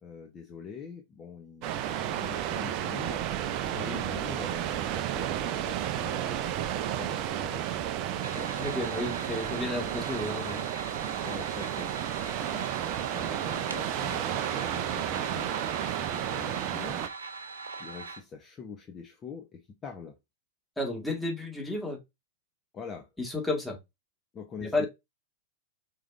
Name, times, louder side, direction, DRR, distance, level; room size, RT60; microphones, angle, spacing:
voice 1, 0.0-3.2 3.7-7.7 8.1-9.0 11.2-11.9 12.3-12.7 13.0-15.5 15.8-17.1 17.8-20.2 22.7-23.1 24.3-24.8, left 6 dB, 25° left, 0.8 m, -45 dB
sound 1, 1.6-17.1, right 11 dB, 45° right, 0.5 m, -32 dB
voice 2, 3.7-4.0 8.6-10.7 20.8-22.0 23.2-23.8 24.6-24.9, left 2 dB, 5° left, 1.6 m, -32 dB
sound 2, 8.2-18.2, right 4 dB, 75° right, 1.0 m, -41 dB
4.9 x 3.7 x 2.5 m
figure-of-eight pair, 95°, 0 cm